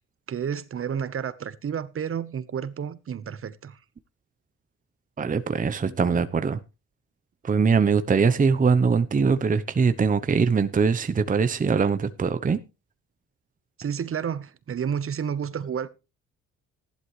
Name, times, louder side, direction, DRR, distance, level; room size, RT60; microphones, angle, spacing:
voice 1, 0.3-3.8 13.8-15.9, right 7 dB, 45° right, 1.1 m, -30 dB
voice 2, 5.2-6.6 7.4-12.6, right 5 dB, 25° right, 0.8 m, -22 dB
14.5 x 11.5 x 3.2 m
cardioid pair, 90°, 30 cm